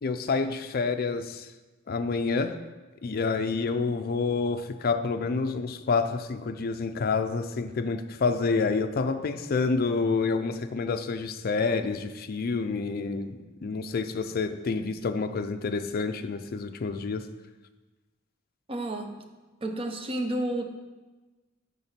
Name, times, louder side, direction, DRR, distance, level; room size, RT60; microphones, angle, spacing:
voice 1, 0.0-1.5 1.9-2.6 3.0-17.2, left 4 dB, 45° left, 8 dB, 0.4 m, -28 dB
voice 2, 18.7-19.2 19.6-20.6, right 1 dB, 25° right, 5 dB, 0.7 m, -31 dB
6.9 x 4.4 x 5.8 m, 1.2 s
head